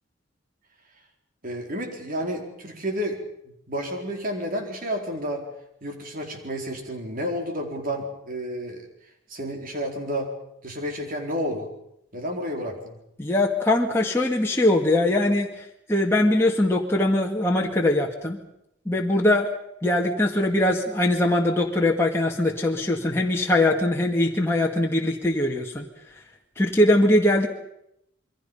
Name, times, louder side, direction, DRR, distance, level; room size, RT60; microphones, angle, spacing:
voice 1, 1.4-3.2 3.5-5.5 5.8-8.9 9.3-10.3 10.6-11.7 12.1-13.0, equal, 45° right, 3 dB, 4.3 m, -31 dB
voice 2, 13.2-18.4 18.9-19.5 19.8-25.9 26.6-27.5, left 1 dB, 15° left, -1 dB, 2.0 m, -21 dB
27.5 x 23.0 x 5.5 m, 0.78 s
head